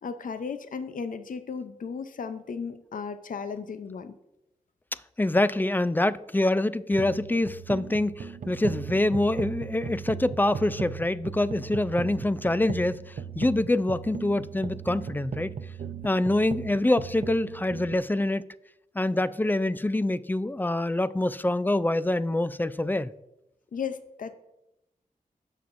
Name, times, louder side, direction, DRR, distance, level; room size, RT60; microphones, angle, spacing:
voice 1, 0.0-4.1 23.7-24.3, left 6 dB, 65° left, 0.6 m, -35 dB
voice 2, 5.2-15.5 16.0-18.4 18.9-23.1, left 1 dB, 15° left, 0.4 m, -25 dB
sound 1, 6.9-17.9, right 6 dB, 60° right, 0.7 m, -37 dB
16.5 x 6.2 x 2.6 m
cardioid pair, 50°, 15 cm